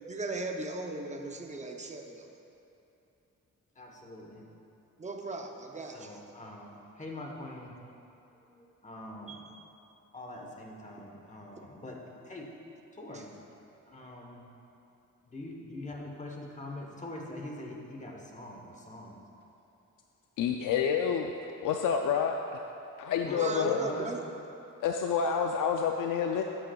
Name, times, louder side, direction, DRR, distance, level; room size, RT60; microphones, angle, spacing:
voice 1, 0.1-2.3 5.0-6.2 9.3-9.5 13.1-13.2 23.3-24.2, right 2 dB, 25° right, 3 dB, 0.6 m, -37 dB
voice 2, 3.8-4.4 5.9-7.8 8.4-9.5 10.1-12.5 12.9-13.3 13.9-14.5 15.2-19.2 21.5-21.6 23.2-24.1, left 1 dB, 25° left, 0 dB, 1.1 m, -43 dB
voice 3, 20.4-21.3 21.6-22.6 23.0-23.8 24.8-26.4, left 7 dB, 85° left, 3 dB, 0.5 m, -28 dB
13.0 x 7.8 x 2.3 m, 2.8 s
wide cardioid pair, 125°, 31 cm